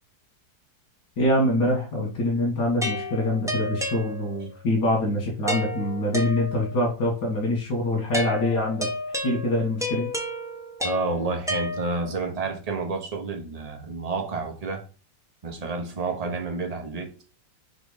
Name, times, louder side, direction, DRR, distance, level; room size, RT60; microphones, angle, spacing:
voice 1, 1.2-8.9 9.2-10.1, left 1 dB, 70° left, 2.3 m, -24 dB
sound 1, 2.8-4.6 5.5-6.9 8.1-12.2, left 1 dB, 5° right, 0.7 m, -32 dB
voice 2, 10.8-14.8 15.4-17.1, right 3 dB, 25° right, 1.0 m, -30 dB
4.4 x 4.3 x 5.0 m
omnidirectional pair, 1.8 m